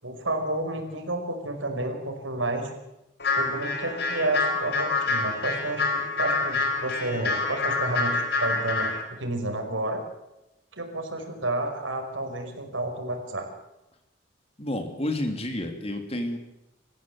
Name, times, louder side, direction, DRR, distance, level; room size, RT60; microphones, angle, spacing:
voice 1, 0.0-2.7 3.3-10.0 10.7-13.5, right 2 dB, 85° right, 5 dB, 5.3 m, -30 dB
sound 1, 3.2-9.0, left 3 dB, 55° left, 4.8 m, -27 dB
voice 2, 14.6-16.4, left 1 dB, 30° left, 6 dB, 3.3 m, -30 dB
28.5 x 15.5 x 8.0 m, 0.93 s
head